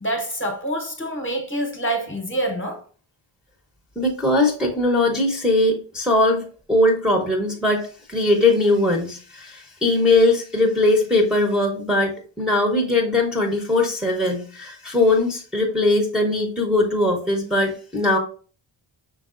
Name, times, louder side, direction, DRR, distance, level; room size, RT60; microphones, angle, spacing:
voice 1, 0.0-2.8, right 1 dB, 25° left, 1.0 m, -26 dB
voice 2, 4.0-6.4 6.7-7.8 8.1-18.2, left 2 dB, ahead, 0.9 m, -20 dB
5.4 x 3.5 x 2.5 m
cardioid pair, 100°, 48 cm